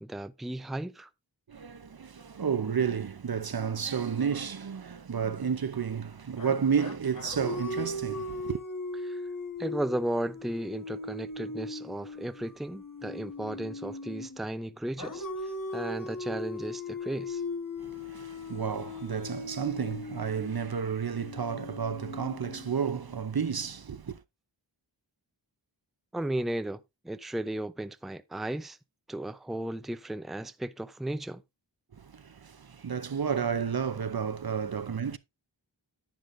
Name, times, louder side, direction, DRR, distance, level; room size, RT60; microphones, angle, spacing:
voice 1, 0.0-1.1 9.1-9.2 9.6-15.3 15.7-17.4 26.1-28.8 29.1-31.4, right 1 dB, ahead, 0.6 m, -35 dB
voice 2, 1.5-8.6 17.8-24.2 31.9-35.2, right 7 dB, 50° right, 0.8 m, -31 dB
sound 1, 6.4-14.4 15.0-23.1, left 2 dB, 45° left, 1.6 m, -39 dB
10.5 x 9.4 x 2.6 m
wide cardioid pair, 45°, 46 cm